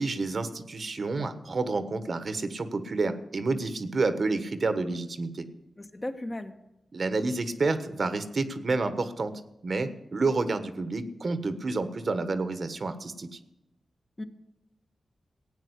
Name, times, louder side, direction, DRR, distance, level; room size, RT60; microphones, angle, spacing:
voice 1, 0.0-5.5 6.9-9.3 9.6-13.4, right 3 dB, 50° right, 11 dB, 1.3 m, -29 dB
voice 2, 5.8-6.5 14.2-14.3, left 1 dB, 25° left, 6 dB, 1.4 m, -35 dB
15.5 x 9.1 x 8.1 m, 0.93 s
wide cardioid pair, 90°, 0 cm